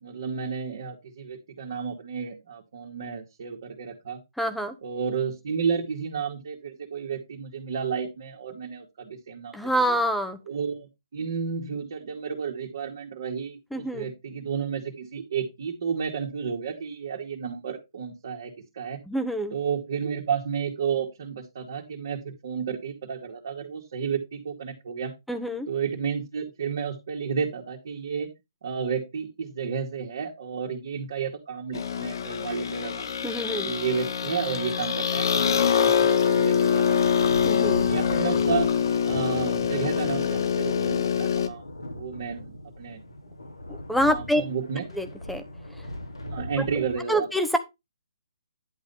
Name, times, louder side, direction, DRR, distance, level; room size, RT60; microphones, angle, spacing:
voice 1, 0.0-4.2 4.8-10.0 10.5-19.0 19.5-25.1 25.7-28.3 28.6-33.0 33.6-37.3 37.9-38.7 39.0-41.6 41.9-43.0 44.0-44.9 46.2-47.3, right 6 dB, 55° right, -2 dB, 2.5 m, -32 dB
voice 2, 4.4-4.7 9.5-10.4 13.7-14.1 19.1-19.5 25.3-25.7 33.2-33.7 37.4-37.9 43.9-44.4 45.0-45.4 47.1-47.6, equal, ahead, 8 dB, 1.3 m, -26 dB
sound 1, 31.7-41.5, left 7 dB, 55° left, 1.3 m, -24 dB
sound 2, 37.0-47.0, left 1 dB, 90° left, 3.6 m, -39 dB
11.0 x 4.0 x 5.6 m, 0.22 s
figure-of-eight pair, 140°, 2 cm